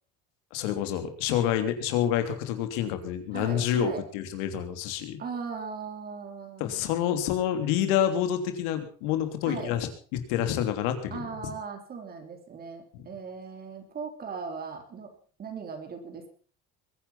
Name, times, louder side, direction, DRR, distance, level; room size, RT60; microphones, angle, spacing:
voice 1, 0.5-5.2 6.6-11.3 12.9-13.0, left 10 dB, 85° left, 8 dB, 3.1 m, -28 dB
voice 2, 3.3-4.0 5.2-7.0 9.4-9.7 11.1-15.1 15.4-16.3, right 5 dB, 30° right, 6 dB, 3.5 m, -38 dB
22.0 x 10.0 x 5.7 m, 0.42 s
cardioid pair, 140°, 29 cm